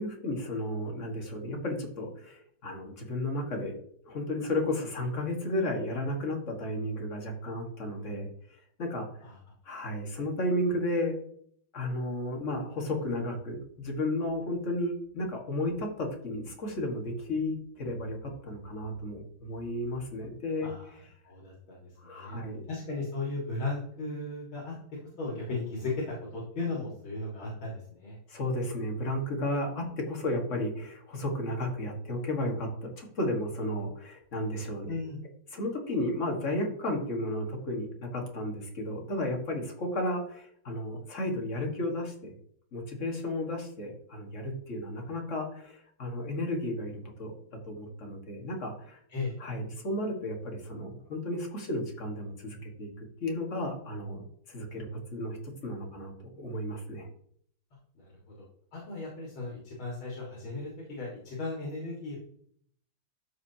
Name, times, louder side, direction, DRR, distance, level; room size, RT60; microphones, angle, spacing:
voice 1, 0.0-3.7 4.0-8.3 8.8-9.2 9.6-11.1 11.7-20.7 22.0-22.6 28.3-34.9 35.5-42.3 42.7-47.3 47.6-49.0 49.4-52.9 53.2-54.2 54.5-57.1, left 1 dB, 40° left, 1 dB, 1.8 m, -33 dB
voice 2, 20.6-20.9 21.2-28.2 34.9-35.2 49.1-49.4 58.0-58.1 58.7-62.2, left 3 dB, 75° left, -5 dB, 2.7 m, -36 dB
12.5 x 5.0 x 2.8 m, 0.63 s
omnidirectional pair, 2.3 m